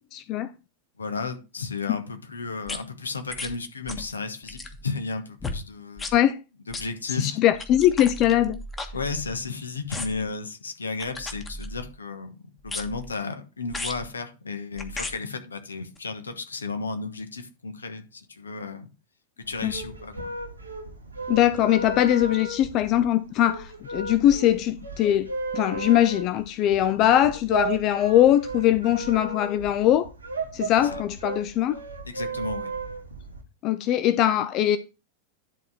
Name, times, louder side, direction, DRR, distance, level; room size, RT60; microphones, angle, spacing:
voice 1, 0.1-0.5 6.1-6.4 7.2-8.6 19.6-19.7 21.3-30.1 30.5-31.8 33.6-34.8, left 12 dB, 40° left, 0.5 m, -21 dB
voice 2, 1.0-6.1 6.7-7.4 8.9-12.4 12.6-18.9 19.5-20.3 30.9-31.0 32.0-32.7, left 4 dB, 75° left, 1.2 m, -33 dB
sound 1, 2.7-2.8 3.3-3.5 3.9-4.1 4.4-4.8 5.4-5.6 6.0-6.2 6.7-6.9 7.6-9.5 9.9-10.3 11.0-11.9 12.6-13.1 13.7-14.1 14.8-15.2 16.0-16.1, left 2 dB, 15° left, 1.3 m, -35 dB
sound 2, 19.4-33.4, right 3 dB, 80° right, 1.6 m, -35 dB
10.5 x 4.1 x 4.7 m
figure-of-eight pair, 90°, 0 cm